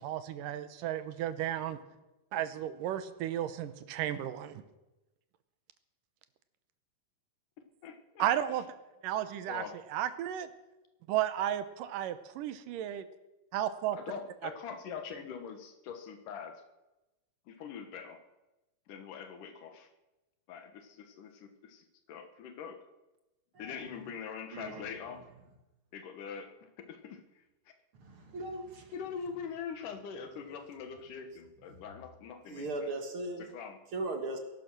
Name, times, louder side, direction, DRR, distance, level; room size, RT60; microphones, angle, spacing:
voice 1, 0.0-1.8 2.3-4.6 8.2-8.8 9.0-9.6 9.9-10.5 11.1-13.1 13.5-14.0, right 11 dB, 80° right, 12 dB, 2.5 m, -33 dB
voice 2, 7.8-8.3 9.5-9.7 13.9-16.6 17.5-18.2 18.9-19.9 20.5-22.8 23.6-25.2 25.9-27.2 28.9-32.9 33.4-33.8, left 6 dB, 75° left, 7 dB, 2.9 m, -43 dB
voice 3, 24.5-24.9 28.0-28.9 31.7-31.8 32.5-33.4 33.9-34.4, right 2 dB, 50° right, 4 dB, 2.1 m, -38 dB
19.0 x 12.0 x 6.1 m, 1.0 s
omnidirectional pair, 3.8 m